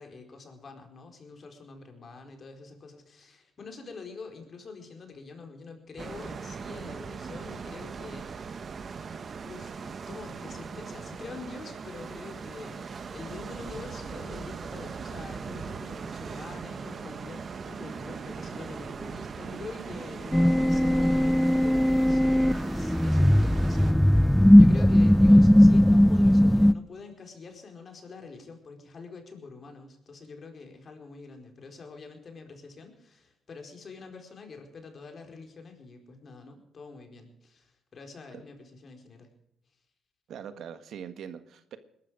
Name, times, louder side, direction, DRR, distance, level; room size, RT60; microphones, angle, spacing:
voice 1, 0.0-9.1 9.4-39.3, left 4 dB, 45° left, 4 dB, 4.5 m, -46 dB
sound 1, 6.0-23.9, right 5 dB, 45° right, 1.1 m, -39 dB
sound 2, 20.3-26.7, equal, 5° left, 0.6 m, -18 dB
voice 2, 40.3-41.8, right 8 dB, 70° right, 10 dB, 1.5 m, -42 dB
20.5 x 12.5 x 5.0 m, 0.78 s
cardioid pair, 90°, 0 cm